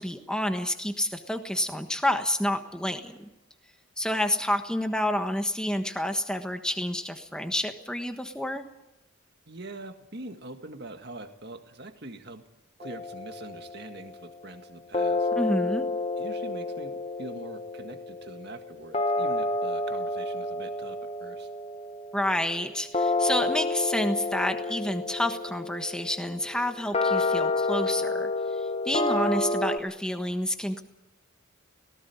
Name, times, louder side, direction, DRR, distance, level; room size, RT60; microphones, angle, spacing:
voice 1, 0.0-3.2 4.0-8.7 15.3-15.9 22.1-30.8, left 1 dB, 5° left, 6 dB, 1.3 m, -29 dB
voice 2, 9.5-12.4 12.8-15.3 16.2-21.5, right 2 dB, 50° right, 6 dB, 1.9 m, -43 dB
sound 1, 12.8-14.2 14.9-29.8, left 2 dB, 30° left, 0.9 m, -30 dB
18.0 x 17.5 x 9.5 m, 0.91 s
head